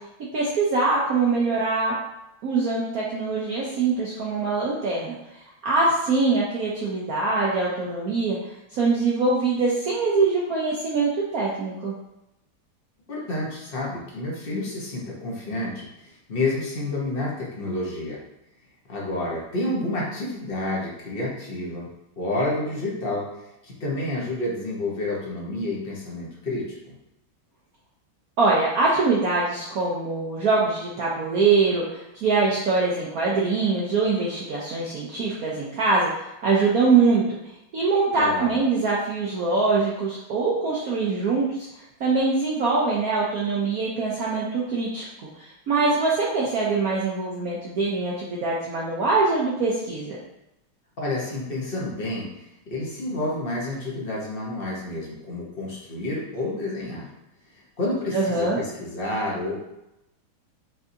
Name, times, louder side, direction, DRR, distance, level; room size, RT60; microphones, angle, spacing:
voice 1, 0.3-2.0 2.4-5.2 5.6-8.4 8.7-11.9 28.4-36.1 36.4-37.4 37.7-41.7 42.0-50.2 58.1-58.6, right 3 dB, 70° right, -5 dB, 0.9 m, -23 dB
voice 2, 13.1-18.2 18.9-21.9 22.2-23.3 23.6-26.7 38.1-38.6 51.0-52.3 52.7-57.1 57.8-59.6, left 2 dB, 45° left, -4 dB, 0.7 m, -29 dB
5.8 x 2.7 x 2.7 m, 0.89 s
omnidirectional pair, 2.2 m